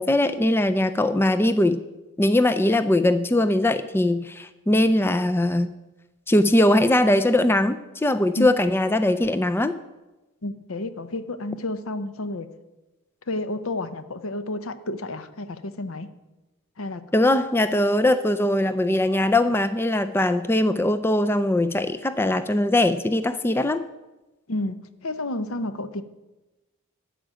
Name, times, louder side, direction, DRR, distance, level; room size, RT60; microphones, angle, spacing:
voice 1, 0.0-1.8 2.2-5.7 6.3-9.8 17.1-23.8, left 1 dB, 10° left, 11 dB, 0.3 m, -21 dB
voice 2, 10.4-12.5 13.3-16.1 16.8-17.0 24.5-26.0, left 2 dB, 75° left, 12 dB, 0.7 m, -31 dB
12.5 x 5.1 x 8.8 m, 1.1 s
head